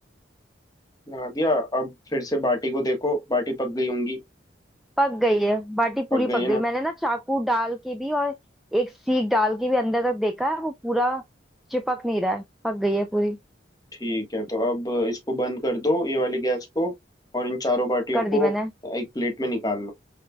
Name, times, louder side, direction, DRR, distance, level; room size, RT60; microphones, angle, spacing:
voice 1, 1.1-4.2 6.1-6.6 14.0-16.9 17.3-18.5 18.8-19.9, left 1 dB, 20° left, 1.3 m, -26 dB
voice 2, 5.0-8.3 8.7-11.2 11.7-13.4 18.1-18.7, equal, ahead, 0.3 m, -24 dB
5.3 x 3.3 x 2.2 m
head